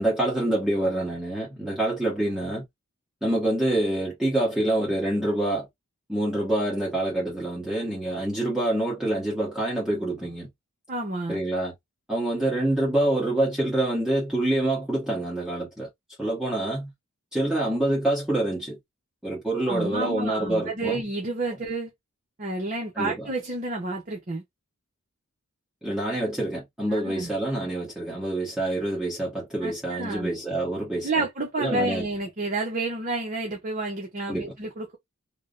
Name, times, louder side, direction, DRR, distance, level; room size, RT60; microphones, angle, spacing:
voice 1, 0.0-2.6 3.2-5.7 6.1-10.5 11.3-11.7 12.1-15.9 16.2-16.9 17.3-18.8 19.2-21.0 23.0-23.3 25.8-31.1 31.6-32.0 34.3-34.5, right 1 dB, 5° right, 1.0 m, -26 dB
voice 2, 10.9-11.4 19.7-21.9 22.4-24.4 26.9-27.3 29.6-30.3 31.0-35.0, right 2 dB, 35° right, 0.6 m, -30 dB
3.3 x 2.1 x 2.4 m
head